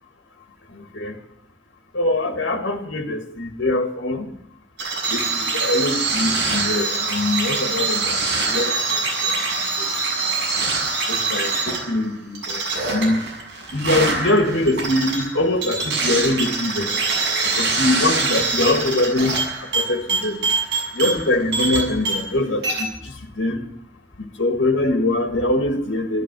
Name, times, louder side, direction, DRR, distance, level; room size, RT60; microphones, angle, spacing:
voice 1, 0.7-1.2 1.9-4.3 5.1-9.0 9.3-9.4 9.8-9.9 10.2-10.4 11.1-12.6 12.9-13.2 13.7-16.9 17.6-19.3 19.7-20.4 20.9-23.7 24.4-26.2, left 2 dB, 85° left, 1.9 m, -23 dB
sound 1, 4.8-22.4 22.6-22.8, right 3 dB, 65° right, 7.5 m, -24 dB
14.0 x 14.0 x 6.1 m
head